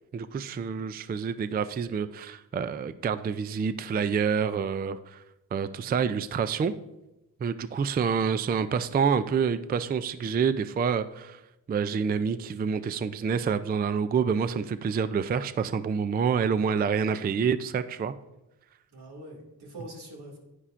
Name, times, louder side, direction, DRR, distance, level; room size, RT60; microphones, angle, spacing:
voice 1, 0.1-5.2 5.5-6.7 7.4-11.4 11.7-18.1, right 6 dB, 25° right, 13 dB, 0.3 m, -27 dB
voice 2, 18.9-20.4, right 1 dB, 85° right, -1 dB, 2.3 m, -45 dB
9.9 x 9.7 x 2.5 m, 0.96 s
cardioid pair, 90°, 39 cm